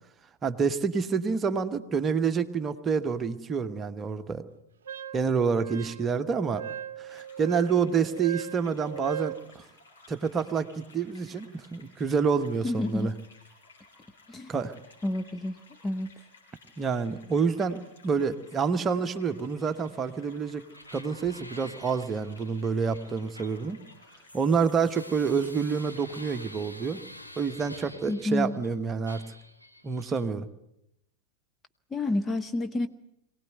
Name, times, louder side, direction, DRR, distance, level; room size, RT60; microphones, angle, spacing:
voice 1, 0.4-4.4 5.1-6.6 7.0-9.6 10.1-13.1 14.5-14.7 16.8-20.6 20.9-23.8 24.3-27.0 27.4-29.2 29.8-30.5, right 5 dB, 20° right, 9 dB, 1.3 m, -28 dB
Wind instrument woodwind instrument, 4.9-9.4, right 9 dB, 65° right, 0.8 m, -39 dB
sound 1, 7.1-26.5, left 3 dB, 65° left, 6.4 m, -57 dB
voice 2, 12.6-13.1 14.3-14.5 15.0-15.6 15.8-16.1 28.1-28.5 31.9-32.9, left 2 dB, 15° left, 8 dB, 0.9 m, -29 dB
sound 2, 20.7-28.7 29.1-30.3, left 1 dB, 90° left, 1.8 m, -48 dB
23.5 x 17.5 x 9.3 m, 0.83 s
figure-of-eight pair, 90°, 0 cm